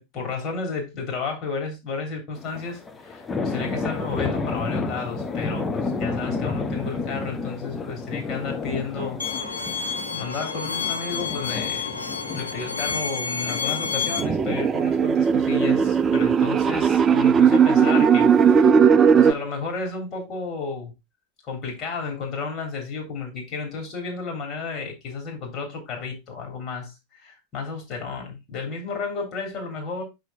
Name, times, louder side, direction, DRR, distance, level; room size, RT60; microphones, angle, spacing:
voice 1, 0.0-9.2 10.1-18.8 19.1-20.9 21.5-30.0, left 4 dB, 40° left, 3.4 m, -32 dB
sound 1, 2.4-18.7, left 4 dB, 20° left, 0.9 m, -32 dB
Bowed string instrument, 9.2-14.2, left 5 dB, 80° left, 1.0 m, -29 dB
sound 2, 14.2-19.3, right 7 dB, 25° right, 0.5 m, -17 dB
6.1 x 5.1 x 4.1 m
figure-of-eight pair, 85°, 0 cm